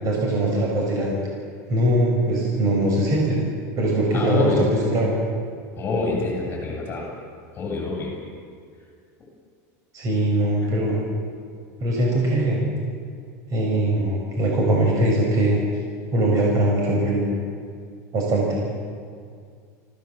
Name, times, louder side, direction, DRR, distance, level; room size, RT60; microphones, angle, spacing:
voice 1, 0.0-1.1 1.7-3.4 3.7-4.5 4.8-5.1 9.9-11.0 11.8-12.6 13.5-15.6 16.1-17.3 18.1-18.6, right 1 dB, 40° right, -2 dB, 5.7 m, -21 dB
voice 2, 4.1-4.7 5.8-7.1 7.6-8.1 10.6-10.7, left 3 dB, 25° left, -2 dB, 7.4 m, -25 dB
26.5 x 17.0 x 7.4 m, 2.1 s
supercardioid pair, 130°, 9 cm